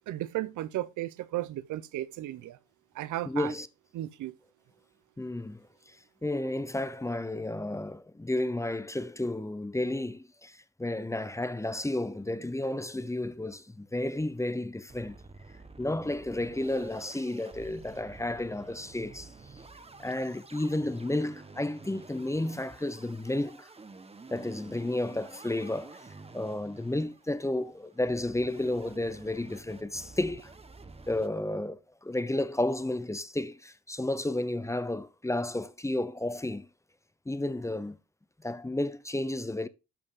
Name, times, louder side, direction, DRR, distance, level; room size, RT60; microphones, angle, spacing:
voice 1, 0.1-2.6 2.9-3.5 3.9-4.3, right 14 dB, 80° right, 0.8 m, -34 dB
voice 2, 3.3-3.7 5.2-6.0 6.2-15.2 15.8-19.6 20.0-23.7 24.3-26.1 26.3-30.5 31.1-36.7 37.3-38.0 38.4-39.7, left 1 dB, 10° left, 0.8 m, -32 dB
sound 1, 13.5-13.7 14.0-14.1 14.4-14.5 14.9-31.3, right 3 dB, 20° right, 1.1 m, -50 dB
12.0 x 5.3 x 3.7 m
cardioid pair, 90°, 30 cm